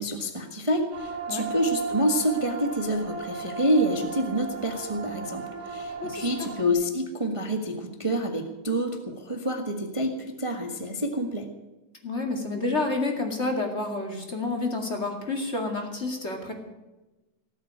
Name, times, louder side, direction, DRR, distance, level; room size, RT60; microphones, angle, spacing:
voice 1, 0.0-11.5, equal, 45° right, 4 dB, 0.4 m, -27 dB
sound 1, 0.9-6.7, right 4 dB, 80° right, 4.3 m, -36 dB
voice 2, 6.0-6.5 12.0-16.5, left 2 dB, 25° left, 2 dB, 2.2 m, -29 dB
18.5 x 8.1 x 9.3 m, 1.1 s
omnidirectional pair, 3.5 m